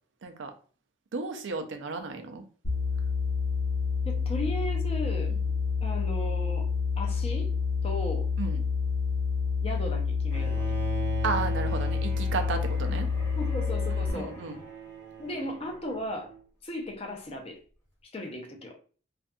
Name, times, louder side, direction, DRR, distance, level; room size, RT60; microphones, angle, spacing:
voice 1, 1.1-2.4 8.4-8.6 11.2-13.1 14.0-14.6, right 4 dB, 80° right, 6 dB, 0.4 m, -33 dB
sound 1, 2.6-14.1, left 5 dB, 70° left, 0.9 m, -28 dB
voice 2, 4.0-5.4 5.8-6.7 7.0-7.5 7.8-8.3 9.6-10.7 13.4-14.4 15.2-16.3 16.6-17.6 18.1-18.7, left 1 dB, 30° left, 2 dB, 0.5 m, -36 dB
Bowed string instrument, 10.3-16.4, right 5 dB, 15° left, 1.0 m, -40 dB
2.5 x 2.2 x 2.5 m, 0.40 s
head